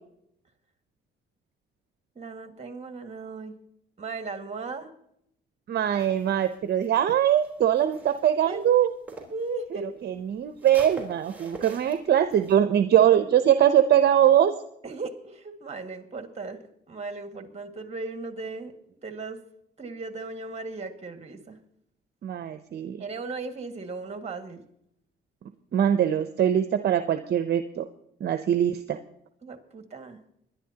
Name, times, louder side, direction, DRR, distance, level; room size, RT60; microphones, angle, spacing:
voice 1, 2.2-3.6 4.0-4.9 8.4-8.6 9.3-10.1 14.8-16.6 16.9-18.7 19.0-19.4 19.8-21.6 23.0-24.6 29.4-30.2, right 3 dB, 35° right, 7 dB, 1.8 m, -36 dB
voice 2, 5.7-8.9 9.7-14.5 22.2-23.0 25.7-27.9 28.2-29.0, right 10 dB, 55° right, 9 dB, 0.7 m, -22 dB
sound 1, 5.9-9.5 9.8-12.6, right 3 dB, 10° right, 3.8 m, -45 dB
22.0 x 11.0 x 2.8 m, 0.73 s
cardioid pair, 90°, 20 cm